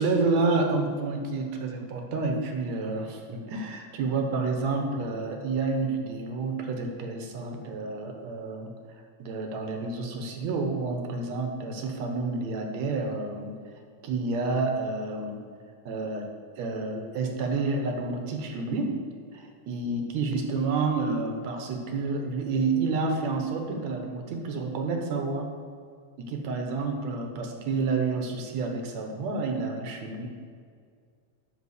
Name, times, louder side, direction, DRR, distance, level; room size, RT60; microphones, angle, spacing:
voice 1, 0.0-8.7 9.2-13.5 14.0-15.4 15.9-16.3 16.6-18.9 19.3-25.5 26.2-30.3, right 3 dB, 70° right, 3 dB, 2.3 m, -29 dB
8.4 x 6.5 x 6.6 m, 2.1 s
omnidirectional pair, 3.4 m